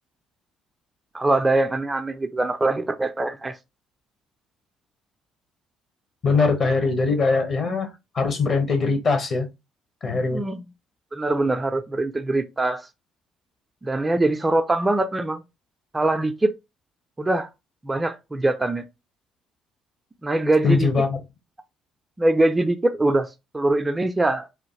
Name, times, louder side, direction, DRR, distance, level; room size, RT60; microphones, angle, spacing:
voice 1, 1.1-3.6 10.3-10.6 11.1-12.9 13.8-15.4 15.9-16.5 17.2-17.5 17.8-18.8 20.2-20.9 22.2-24.5, right 2 dB, 20° right, 0.4 m, -23 dB
voice 2, 6.2-7.9 8.1-9.5 10.0-10.4 20.6-21.2, left 4 dB, 45° left, 1.1 m, -21 dB
3.4 x 2.2 x 3.2 m
hypercardioid pair, 50°, 0 cm